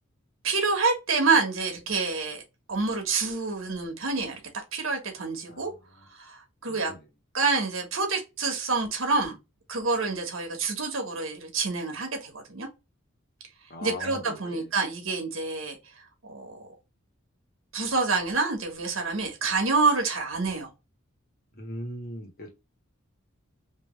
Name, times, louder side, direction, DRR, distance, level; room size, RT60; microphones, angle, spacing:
voice 1, 0.4-2.4 2.7-4.4 4.7-5.7 6.2-6.9 7.3-9.4 9.7-12.7 13.8-15.8 16.3-16.6 17.7-20.7, right 4 dB, 75° right, 1.3 m, -27 dB
voice 2, 6.7-7.0 13.7-14.7 21.5-22.5, left 1 dB, 45° left, 1.4 m, -39 dB
3.2 x 2.9 x 3.2 m
head